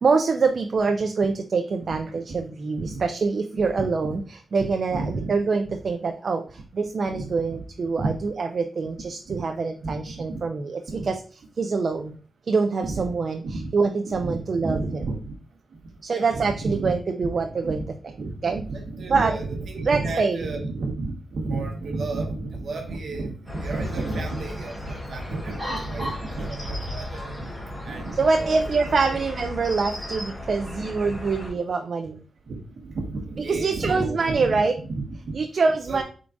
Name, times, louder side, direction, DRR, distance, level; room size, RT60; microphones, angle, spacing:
voice 1, 0.0-11.2 11.6-12.2 12.5-15.0 16.0-17.8 18.4-18.6 19.1-19.3 19.9-20.5 28.2-32.3 33.5-34.7 35.3-36.0, right 4 dB, 45° right, 5 dB, 0.4 m, -25 dB
voice 2, 2.1-2.4 2.8-3.0 3.6-4.2 4.6-5.3 5.6-5.7 7.1-7.6 7.9-8.1 9.3-9.4 9.8-9.9 10.3-10.4 10.9-11.1 12.8-13.0 13.4-13.7 14.0-15.3 16.1-16.9 17.2-17.3 17.6-17.8 18.2-27.5 27.8-28.7 29.1-29.2 31.1-31.2 32.5-35.3 35.9-36.0, right 3 dB, 65° right, 2 dB, 1.0 m, -32 dB
sound 1, 23.5-31.5, left 1 dB, 10° left, 1.2 m, -35 dB
4.6 x 3.7 x 2.5 m, 0.39 s
wide cardioid pair, 135°, 0 cm